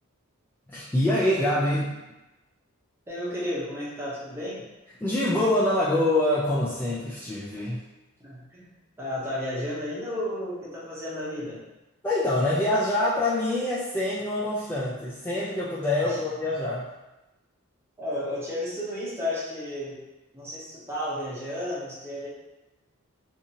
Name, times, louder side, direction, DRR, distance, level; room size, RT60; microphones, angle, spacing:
voice 1, 0.7-2.0 5.0-7.8 12.0-16.9, left 1 dB, 10° left, -9 dB, 0.3 m, -25 dB
voice 2, 3.1-4.7 8.2-8.7 9.0-11.6 16.0-16.2 18.0-20.0 20.3-22.3, left 1 dB, 10° right, -7 dB, 0.7 m, -33 dB
2.7 x 2.5 x 2.7 m, 1.0 s
head